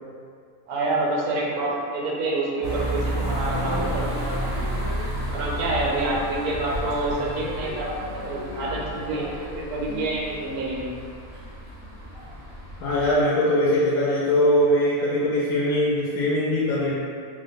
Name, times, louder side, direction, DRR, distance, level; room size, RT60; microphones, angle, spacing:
voice 1, 0.7-4.6 5.3-9.3 9.6-10.9, right 2 dB, 80° right, -3 dB, 1.2 m, -27 dB
sound 1, 2.6-13.1, right 1 dB, 50° right, 0.6 m, -31 dB
voice 2, 3.5-4.0 4.5-5.1 7.2-10.2 12.2-12.3 12.8-16.9, left 1 dB, 85° left, -7 dB, 1.1 m, -24 dB
2.9 x 2.0 x 3.8 m, 2.1 s
omnidirectional pair, 1.6 m